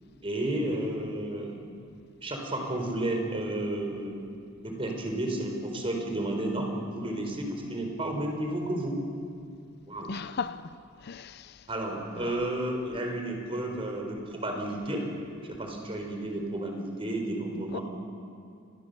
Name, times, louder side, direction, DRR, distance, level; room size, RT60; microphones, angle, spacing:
voice 1, 0.2-1.6 2.2-4.1 4.6-9.0 9.9-10.1 11.7-15.1 15.5-17.8, right 1 dB, 25° right, 4.5 m, -32 dB
voice 2, 10.1-11.7 12.2-12.4 17.7-17.8, left 5 dB, 50° left, 0.5 m, -37 dB
29.5 x 22.0 x 6.9 m
head